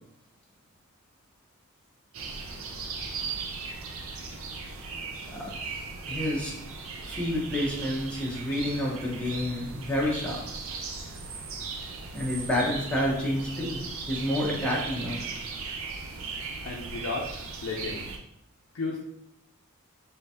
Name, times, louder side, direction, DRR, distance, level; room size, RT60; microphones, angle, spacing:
sound 1, 2.1-18.2, right 4 dB, 65° right, 0.5 m, -37 dB
voice 1, 6.1-6.5 7.0-10.4 12.1-15.3, left 1 dB, 5° left, -5 dB, 0.9 m, -29 dB
voice 2, 16.6-18.1 18.7-19.0, left 3 dB, 65° left, -1 dB, 0.5 m, -34 dB
3.8 x 3.3 x 2.8 m, 0.77 s
head